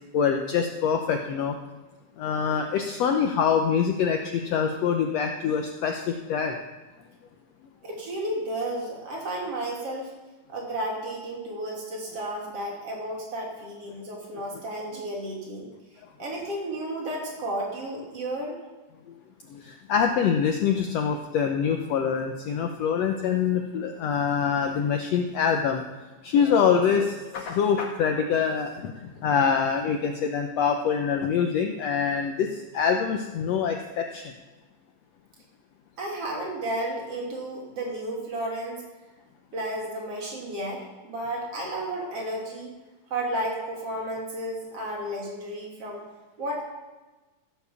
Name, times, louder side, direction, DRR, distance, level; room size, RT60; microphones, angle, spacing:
voice 1, 0.1-1.6 2.2-6.6 19.5-25.8 26.2-34.2, left 7 dB, 70° left, 4 dB, 1.6 m, -25 dB
voice 2, 7.8-10.1 10.5-15.7 16.2-18.6 36.0-38.8 39.5-42.7 43.1-46.0 46.4-46.6, right 1 dB, 50° right, -2 dB, 3.6 m, -32 dB
16.0 x 6.9 x 7.0 m, 1.2 s
omnidirectional pair, 3.8 m